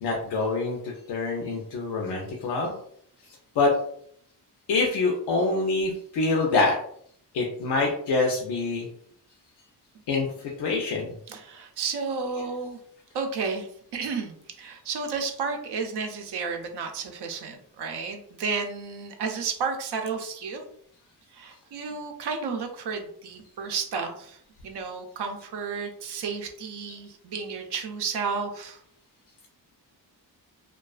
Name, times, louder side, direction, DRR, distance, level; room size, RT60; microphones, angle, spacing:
voice 1, 0.0-2.7 3.6-3.7 4.7-6.8 7.3-8.9 10.1-11.1, left 3 dB, 85° left, -1 dB, 0.5 m, -25 dB
voice 2, 11.3-12.8 13.1-20.6 21.3-24.4 24.6-28.8, right 5 dB, 80° right, 4 dB, 0.5 m, -32 dB
2.3 x 2.3 x 2.3 m, 0.66 s
cardioid pair, 95°, 40 cm